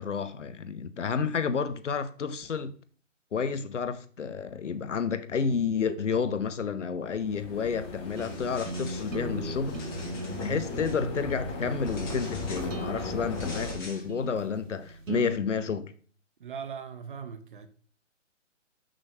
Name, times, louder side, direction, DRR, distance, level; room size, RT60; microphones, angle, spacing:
voice 1, 0.0-2.7 3.3-9.9 10.4-15.9, left 6 dB, 70° left, 0.7 m, -30 dB
sound 1, 7.1-13.8, left 3 dB, 20° left, 1.1 m, -37 dB
sound 2, 8.1-9.2 9.5-11.0 11.8-12.7 13.3-14.0, left 2 dB, 40° left, 2.4 m, -47 dB
sound 3, 8.2-15.4, right 2 dB, 80° right, 1.1 m, -39 dB
voice 2, 16.4-17.7, right 7 dB, 40° right, 0.7 m, -39 dB
6.2 x 6.2 x 3.2 m
figure-of-eight pair, 135°, 38 cm